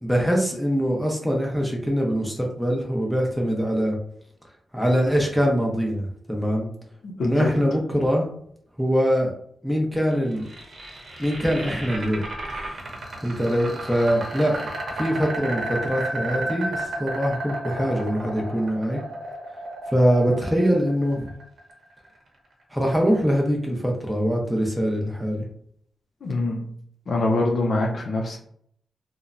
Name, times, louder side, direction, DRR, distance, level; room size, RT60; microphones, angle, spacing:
voice 1, 0.0-4.0 4.7-6.7 7.2-8.3 8.8-9.3 9.6-10.5 11.2-12.2 12.6-12.8 13.2-19.0 19.9-21.2 22.7-25.5, equal, ahead, -1 dB, 0.6 m, -23 dB
voice 2, 7.2-7.5 26.2-26.7 27.1-28.4, left 2 dB, 65° left, 0 dB, 0.4 m, -24 dB
sound 1, 10.1-22.2, right 2 dB, 60° right, 0.9 m, -33 dB
3.0 x 2.1 x 2.4 m, 0.65 s
wide cardioid pair, 100°, 0 cm